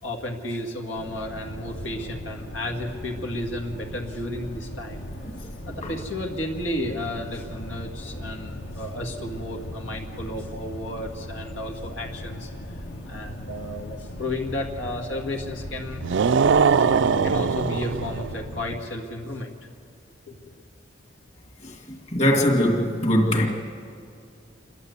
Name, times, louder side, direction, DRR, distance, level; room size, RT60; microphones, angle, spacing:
voice 1, 0.0-5.1 5.4-12.5 13.1-16.0 16.7-19.5 20.3-20.5, left 1 dB, 90° left, 1 dB, 2.0 m, -33 dB
sound 1, 1.0-18.8, equal, 65° left, 1.5 m, -38 dB
sound 2, 16.0-18.4, right 6 dB, 70° right, 0.4 m, -21 dB
voice 2, 22.1-23.5, equal, 35° left, 0 dB, 2.1 m, -20 dB
28.0 x 11.5 x 8.2 m, 2.4 s
head